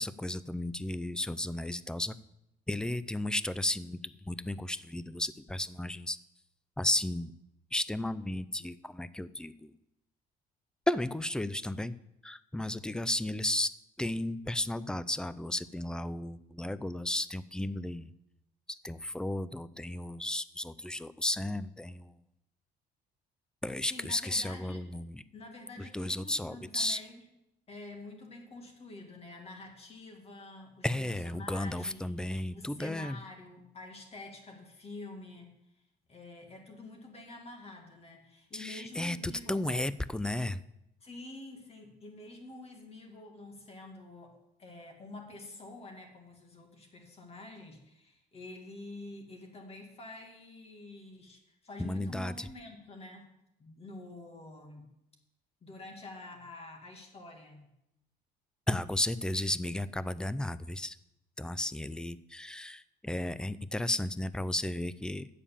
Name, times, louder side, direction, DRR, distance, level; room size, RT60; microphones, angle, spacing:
voice 1, 0.0-2.2 2.7-6.2 6.8-7.3 7.7-9.7 10.9-11.9 12.2-13.7 14.0-18.1 18.7-22.2 23.6-25.2 25.9-27.0 30.8-33.2 38.5-40.6 51.8-52.5 58.7-61.0 61.4-65.3, left 1 dB, 5° left, 16 dB, 0.4 m, -34 dB
voice 2, 23.9-24.8 25.3-27.2 27.7-35.5 36.1-39.7 41.0-53.3 53.6-54.9 55.6-57.7, left 2 dB, 35° left, 2 dB, 2.1 m, -48 dB
8.3 x 7.3 x 7.2 m, 0.85 s
cardioid pair, 110°, 17 cm